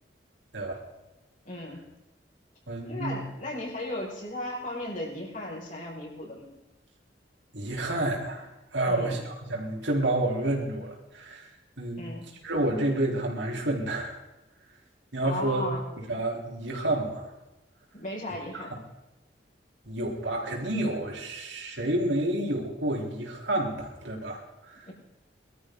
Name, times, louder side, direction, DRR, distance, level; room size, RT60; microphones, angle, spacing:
voice 1, 1.4-1.8 2.8-6.6 8.9-9.2 12.0-12.3 15.2-15.9 17.9-18.7 24.9-25.0, left 1 dB, 50° left, -3 dB, 6.0 m, -36 dB
voice 2, 2.7-3.2 7.5-11.5 11.8-12.1 12.4-14.2 15.1-15.6 16.0-17.3 19.9-24.8, right 1 dB, 90° right, -1 dB, 3.9 m, -29 dB
22.0 x 13.5 x 4.0 m, 1.0 s
head